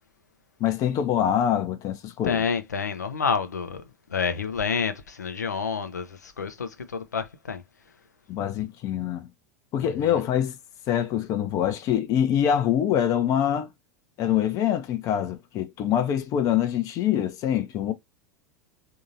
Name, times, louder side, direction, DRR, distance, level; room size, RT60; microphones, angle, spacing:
voice 1, 0.6-2.5 8.3-9.3 9.7-10.6 10.9-13.7 14.2-17.9, left 10 dB, 40° left, 0.7 m, -24 dB
voice 2, 2.2-3.8 4.1-7.6 9.8-10.2, left 6 dB, 75° left, 0.6 m, -29 dB
3.6 x 2.8 x 2.6 m
figure-of-eight pair, 85°, 9 cm